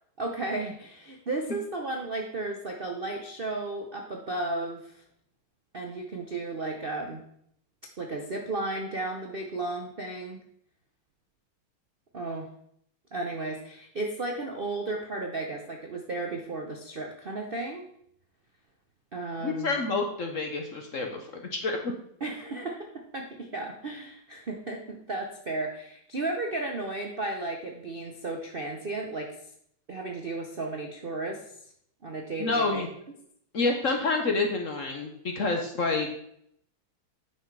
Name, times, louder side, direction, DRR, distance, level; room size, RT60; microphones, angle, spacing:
voice 1, 0.2-4.9 5.7-7.2 8.0-10.4 12.1-12.5 13.1-17.9 19.1-19.7 22.2-29.3 29.9-31.4 32.0-32.9, right 2 dB, 85° right, 2 dB, 0.5 m, -34 dB
voice 2, 19.4-21.9 32.4-32.9 33.5-36.1, left 3 dB, 50° left, 3 dB, 1.0 m, -28 dB
9.1 x 6.0 x 4.7 m, 0.71 s
omnidirectional pair, 2.4 m